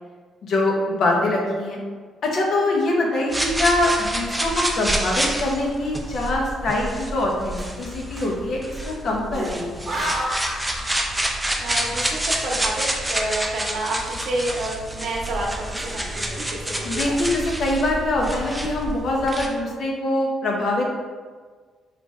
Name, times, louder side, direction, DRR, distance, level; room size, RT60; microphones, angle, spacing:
voice 1, 0.4-1.8 2.2-10.0 16.8-20.9, left 1 dB, 65° left, -1 dB, 0.7 m, -23 dB
sound 1, 3.0-3.4 4.0-4.1 4.3-5.0 5.5-5.7 6.6-8.9 9.3-11.5 11.8-14.6 14.9-15.0 15.6-16.3 16.7-17.0 17.4-18.0 18.6-18.7 18.9-19.4, right 1 dB, 40° right, 0.8 m, -36 dB
sound 2, 3.3-19.5, right 1 dB, 10° right, 0.4 m, -28 dB
voice 2, 11.6-17.1, right 2 dB, 70° right, -2 dB, 0.8 m, -29 dB
3.4 x 2.4 x 3.1 m, 1.5 s
cardioid pair, 90°, 0 cm